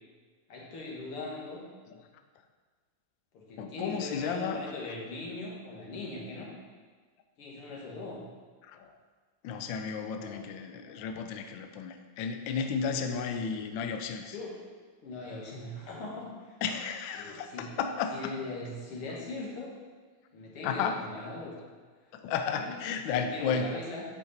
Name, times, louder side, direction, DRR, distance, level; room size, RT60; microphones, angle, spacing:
voice 1, 0.5-1.7 3.3-6.5 7.4-8.3 10.1-10.4 12.9-13.6 14.3-14.5 15.0-16.6 17.1-17.7 18.1-19.7 20.3-21.6 22.4-24.0, left 2 dB, 90° left, -3 dB, 2.5 m, -40 dB
voice 2, 3.6-4.6 8.7-8.9 9.4-14.3 16.6-18.3 20.6-21.0 22.1-23.8, left 6 dB, 75° left, 7 dB, 1.2 m, -33 dB
8.7 x 5.9 x 4.2 m, 1.5 s
omnidirectional pair, 2.4 m